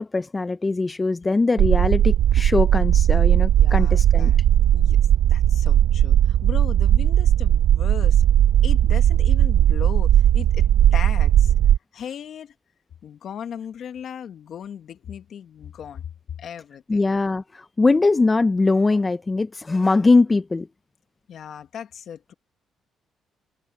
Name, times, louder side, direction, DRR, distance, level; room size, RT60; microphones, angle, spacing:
voice 1, 0.0-4.3 16.9-20.7, left 3 dB, 25° left, 0.8 m, -21 dB
sound 1, 1.6-11.8, right 11 dB, 80° right, 1.1 m, -17 dB
voice 2, 3.6-4.4 4.7-5.0 5.3-8.3 8.6-11.5 11.9-12.5 13.0-16.0 16.4-17.0 21.3-22.3, left 8 dB, 65° left, 2.1 m, -37 dB
cardioid pair, 90°, 0 cm